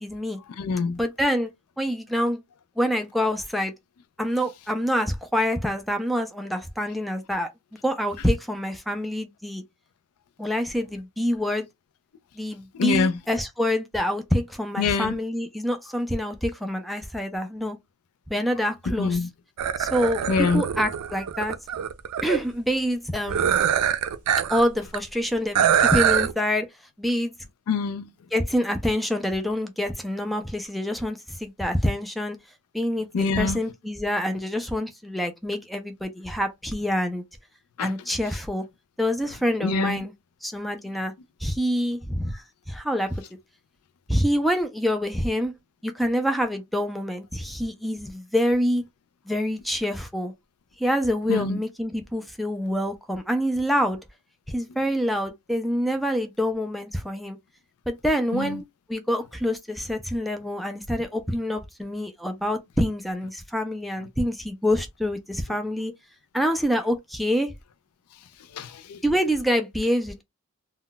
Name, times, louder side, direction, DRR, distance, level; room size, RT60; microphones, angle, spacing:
voice 1, 0.0-0.4 1.0-1.5 1.8-2.4 2.8-3.7 4.2-7.5 7.8-9.6 10.4-11.7 12.4-17.8 18.3-19.3 19.8-21.5 22.2-23.5 24.5-26.7 27.0-27.3 28.3-32.4 32.7-37.2 37.8-38.6 39.0-40.1 40.4-41.1 41.4-43.2 44.1-45.5 45.8-48.8 49.3-50.3 50.8-54.0 54.5-57.4 57.9-65.9 66.3-67.5 69.0-70.2, equal, ahead, 0.3 m, -26 dB
voice 2, 0.6-1.0 12.7-13.2 14.8-15.2 19.0-19.3 20.3-20.6 27.7-28.1 33.1-33.6 37.8-37.9 39.6-40.0 51.3-51.6 58.3-58.6 68.5-69.0, left 4 dB, 75° left, 0.4 m, -25 dB
sound 1, 19.6-22.4 23.3-24.6 24.9-25.0 25.5-26.3, right 9 dB, 90° right, 0.4 m, -23 dB
2.2 x 2.1 x 3.8 m
head